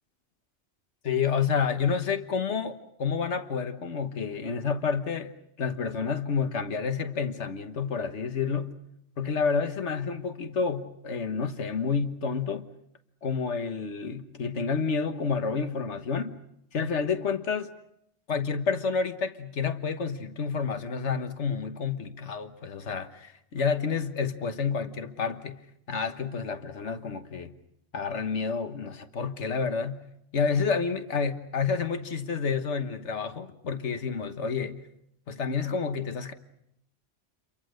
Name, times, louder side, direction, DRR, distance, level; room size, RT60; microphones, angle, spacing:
voice 1, 1.0-5.3 5.6-8.7 9.2-12.7 13.2-16.4 16.7-17.7 18.3-25.6 25.9-27.5 27.9-30.0 30.3-34.8 35.3-36.3, left 5 dB, 90° left, 1.6 m, -29 dB
29.0 x 23.5 x 6.5 m
omnidirectional pair, 1.1 m